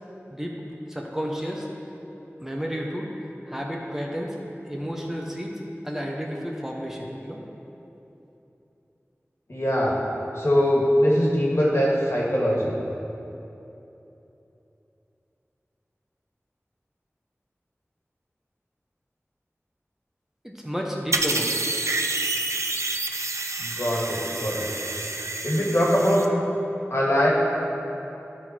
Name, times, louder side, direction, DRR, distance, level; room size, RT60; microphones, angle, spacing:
voice 1, 0.9-1.7 2.4-3.1 3.5-4.4 4.7-5.5 5.8-7.4 20.4-21.5, equal, 10° right, -1 dB, 0.9 m, -31 dB
voice 2, 9.5-10.0 10.3-12.8 23.6-24.7 25.4-26.3 26.9-27.3, equal, 60° left, -4 dB, 1.7 m, -22 dB
sound 1, 21.1-26.3, right 2 dB, 75° right, 0.5 m, -28 dB
12.5 x 4.4 x 4.3 m, 3.0 s
wide cardioid pair, 45°, 5 cm